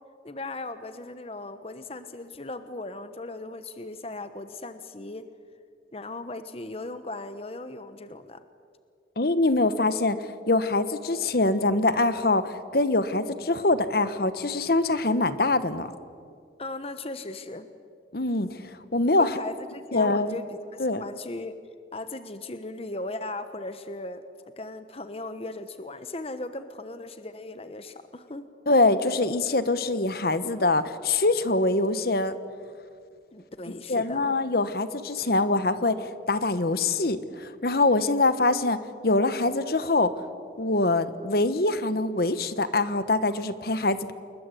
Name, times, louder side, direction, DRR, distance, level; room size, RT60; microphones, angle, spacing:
voice 1, 0.2-5.3 5.9-8.4 16.6-17.7 19.2-21.5 21.9-24.2 24.6-28.5 33.3-34.4, left 2 dB, 35° left, 10 dB, 1.0 m, -37 dB
voice 2, 9.2-15.9 18.1-18.5 18.9-19.4 19.9-20.4 20.8-21.0 28.7-32.4 33.9-40.1 40.6-44.1, left 2 dB, 55° left, 12 dB, 1.1 m, -24 dB
29.0 x 21.0 x 8.4 m, 2.3 s
head